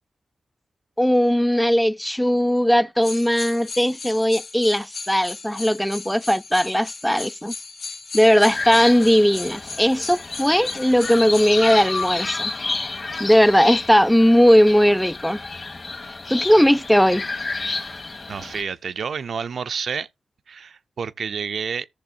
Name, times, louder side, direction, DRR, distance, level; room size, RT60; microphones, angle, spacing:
voice 1, 1.0-7.5 8.1-12.5 13.2-15.4 16.3-17.3, equal, 5° left, 0.4 m, -18 dB
sound 1, 3.0-12.6 13.2-13.3, left 4 dB, 70° left, 1.3 m, -37 dB
sound 2, 8.5-18.6, left 3 dB, 50° left, 1.9 m, -30 dB
voice 2, 18.3-20.1 20.5-21.9, right 6 dB, 70° right, 0.4 m, -29 dB
15.0 x 6.7 x 2.6 m
supercardioid pair, 40°, 0 cm